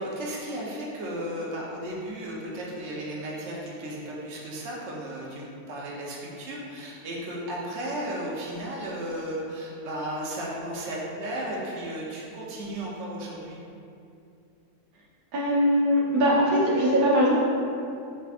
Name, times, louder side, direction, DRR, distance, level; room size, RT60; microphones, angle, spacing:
voice 1, 0.0-13.6, right 1 dB, 55° right, -4 dB, 1.0 m, -34 dB
voice 2, 15.3-17.4, equal, 70° right, -6 dB, 1.4 m, -21 dB
6.2 x 3.4 x 2.5 m, 2.6 s
omnidirectional pair, 1.6 m